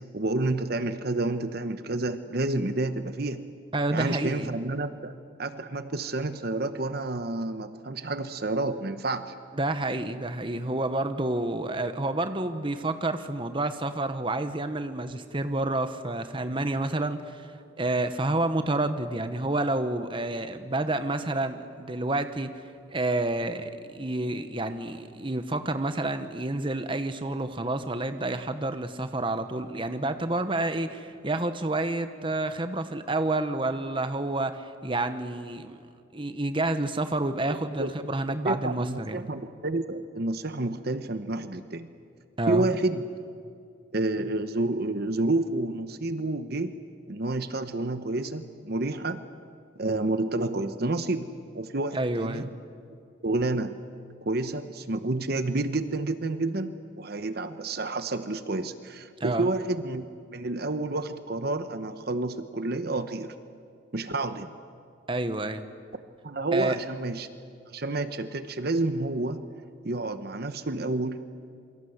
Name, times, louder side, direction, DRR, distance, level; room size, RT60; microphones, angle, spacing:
voice 1, 0.1-3.4 3.9-9.3 37.5-37.9 38.3-41.9 42.5-43.1 43.9-46.7 47.1-49.2 49.8-52.5 53.2-53.8 54.2-63.3 63.9-64.5 66.2-67.3 67.7-69.4 69.8-71.2, right 2 dB, 55° right, 10 dB, 1.0 m, -29 dB
voice 2, 3.7-4.5 9.5-17.4 17.8-22.5 22.9-35.8 36.1-39.3 42.4-42.7 51.9-52.5 59.2-59.5 65.1-65.6 66.5-66.8, right 2 dB, 25° right, 9 dB, 1.1 m, -29 dB
27.5 x 23.5 x 8.0 m, 2.3 s
head